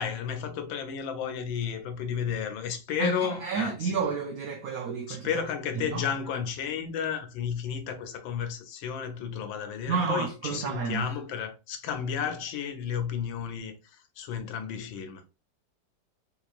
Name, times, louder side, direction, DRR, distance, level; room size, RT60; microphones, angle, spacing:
voice 1, 0.0-4.0 5.1-15.2, left 7 dB, 90° left, 1.5 m, -32 dB
voice 2, 3.0-5.4 5.8-6.0 9.9-11.1, right 6 dB, 70° right, 0.9 m, -31 dB
4.0 x 3.0 x 2.4 m
omnidirectional pair, 2.0 m